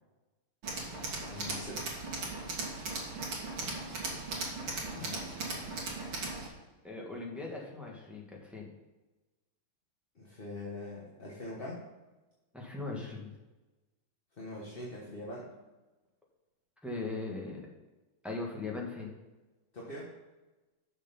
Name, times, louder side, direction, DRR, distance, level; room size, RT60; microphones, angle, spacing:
Tools, 0.6-6.5, right 3 dB, 85° right, 2.8 m, -38 dB
voice 1, 1.2-1.8 4.9-5.8 10.1-11.8 14.4-15.5 19.7-20.1, left 1 dB, 30° left, -4 dB, 1.3 m, -43 dB
voice 2, 3.4-3.8 6.8-8.7 12.5-13.3 16.8-17.6 18.2-19.1, left 3 dB, ahead, -3 dB, 1.4 m, -39 dB
6.6 x 6.5 x 5.6 m, 1.1 s
omnidirectional pair, 2.3 m